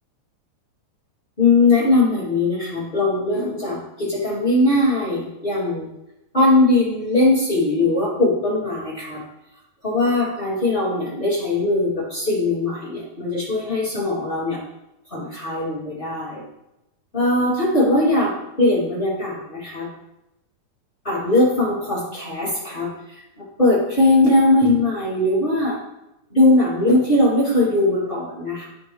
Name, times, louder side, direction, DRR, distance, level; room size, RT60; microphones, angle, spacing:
voice 1, 1.4-5.9 6.3-9.2 9.8-14.6 15.1-16.4 17.1-19.9 21.0-23.2 23.6-25.8 26.3-28.7, left 2 dB, 20° left, -8 dB, 1.9 m, -20 dB
12.5 x 4.3 x 3.0 m, 0.88 s
omnidirectional pair, 3.5 m